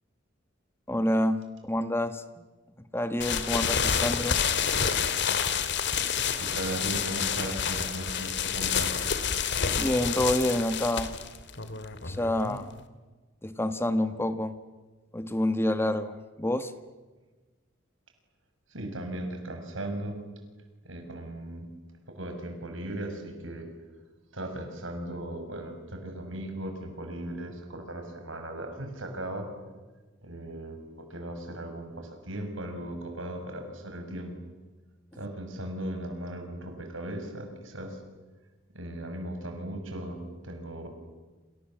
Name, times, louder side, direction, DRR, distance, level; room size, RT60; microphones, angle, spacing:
voice 1, 0.9-2.2 2.9-4.4 9.7-11.1 12.0-12.7 13.4-14.6 15.1-16.7, left 1 dB, 10° left, 11 dB, 1.3 m, -28 dB
sound 1, 3.2-12.8, left 7 dB, 65° left, 2.2 m, -29 dB
voice 2, 6.4-9.0 18.7-20.2 20.8-21.7 22.1-23.7 24.3-29.5 30.2-34.4 35.1-38.0 38.7-40.9, right 1 dB, 80° right, 5 dB, 6.1 m, -37 dB
29.0 x 27.5 x 7.5 m, 1.3 s
head